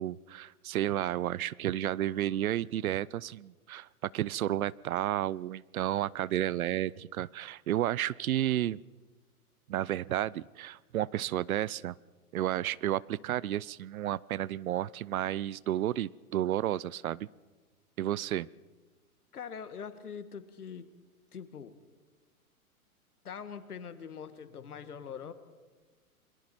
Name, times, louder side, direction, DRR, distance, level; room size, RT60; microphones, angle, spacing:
voice 1, 0.0-8.8 9.7-12.0 12.3-17.3 18.0-18.5, right 12 dB, 70° right, 23 dB, 0.6 m, -32 dB
voice 2, 19.3-20.9 21.3-21.7 23.2-25.3, left 7 dB, 80° left, 12 dB, 1.8 m, -43 dB
29.5 x 22.0 x 4.5 m, 1.3 s
hypercardioid pair, 110°, 44 cm